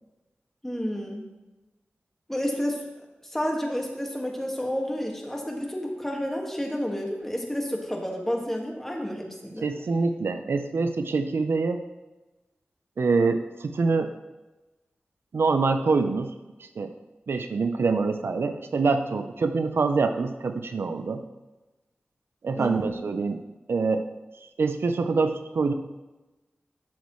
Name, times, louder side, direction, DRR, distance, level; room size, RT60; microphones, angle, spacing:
voice 1, 0.6-1.3 2.3-2.8 3.2-9.7 22.6-22.9, equal, 10° left, 0 dB, 1.7 m, -30 dB
voice 2, 9.6-11.8 13.0-14.1 15.3-16.3 16.8-16.9 17.3-21.2 22.4-23.4 23.7-24.0 24.6-25.7, right 4 dB, 80° right, 7 dB, 0.6 m, -25 dB
11.5 x 7.2 x 3.1 m, 1.1 s
wide cardioid pair, 75°, 4 cm